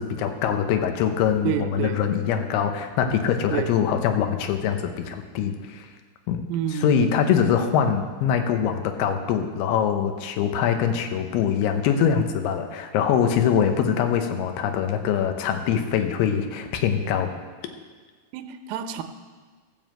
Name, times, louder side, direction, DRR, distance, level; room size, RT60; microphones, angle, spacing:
voice 1, 0.0-5.9 6.3-6.4 6.8-17.3, left 8 dB, 75° left, 6 dB, 2.4 m, -23 dB
voice 2, 1.4-2.1 3.5-3.8 6.5-7.2 18.3-19.0, right 9 dB, 85° right, 7 dB, 3.3 m, -29 dB
16.5 x 5.5 x 7.6 m, 1.5 s
omnidirectional pair, 5.6 m